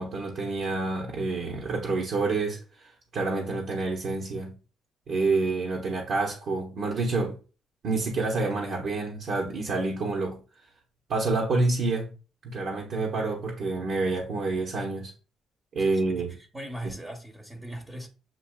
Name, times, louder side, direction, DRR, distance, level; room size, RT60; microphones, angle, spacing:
voice 1, 0.0-4.6 5.1-7.4 7.8-10.4 11.1-12.1 12.4-15.1 15.7-16.3 16.8-16.9, right 3 dB, 65° right, 1.1 m, -28 dB
voice 2, 15.8-18.1, right 1 dB, 20° right, 1.0 m, -40 dB
7.7 x 2.7 x 2.3 m
cardioid pair, 90°, 0 cm